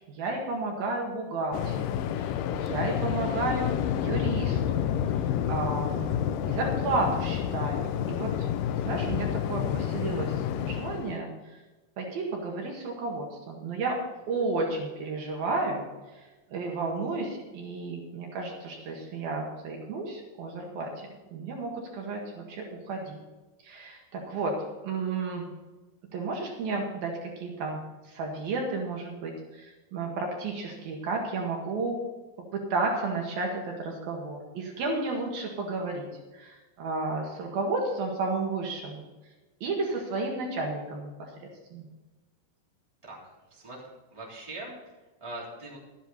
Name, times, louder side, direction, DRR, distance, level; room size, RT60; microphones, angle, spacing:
voice 1, 0.0-3.7 4.0-4.9 5.2-8.5 8.8-11.3 12.0-14.0 14.3-15.9 16.5-23.2 23.6-24.6 24.8-25.5 26.1-27.8 28.1-32.0 32.5-36.1 36.3-39.0 39.6-41.3 41.7-41.9, right 3 dB, 70° right, 0 dB, 3.6 m, -32 dB
Waves surf, 1.5-11.2, left 9 dB, 85° left, 1.9 m, -29 dB
voice 2, 43.0-43.8 44.1-45.8, right 2 dB, 10° right, -5 dB, 3.1 m, -42 dB
12.5 x 10.5 x 4.2 m, 1.2 s
omnidirectional pair, 4.5 m